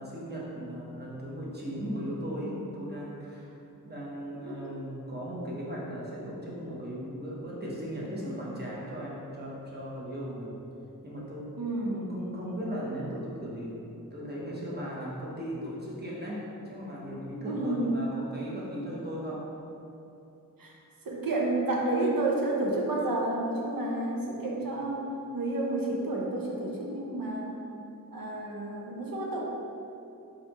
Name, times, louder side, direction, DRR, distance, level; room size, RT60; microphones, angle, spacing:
voice 1, 0.0-3.5 3.8-10.6 11.0-11.5 11.9-13.8 14.1-19.5, equal, 30° right, -6 dB, 1.0 m, -37 dB
voice 2, 11.6-12.0 17.4-17.9 20.6-20.8 21.0-27.5 28.1-29.4, right 2 dB, 75° right, -2 dB, 0.7 m, -30 dB
4.1 x 3.8 x 2.9 m, 2.8 s
wide cardioid pair, 70°, 34 cm